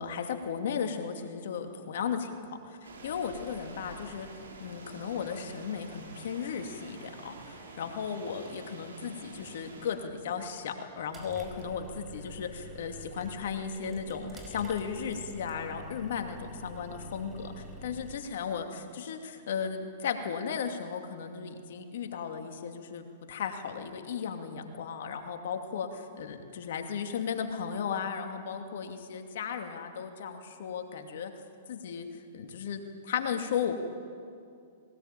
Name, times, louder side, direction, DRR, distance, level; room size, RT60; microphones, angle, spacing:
voice 1, 0.0-4.3 4.6-31.3 31.7-33.7, left 7 dB, 70° left, 5 dB, 2.5 m, -35 dB
sound 1, 2.8-9.9, right 3 dB, 85° right, 4.0 m, -48 dB
sound 2, 9.3-18.2, right 1 dB, 20° right, 5.1 m, -47 dB
20.0 x 19.0 x 9.1 m, 2.4 s
hypercardioid pair, 120°, 0 cm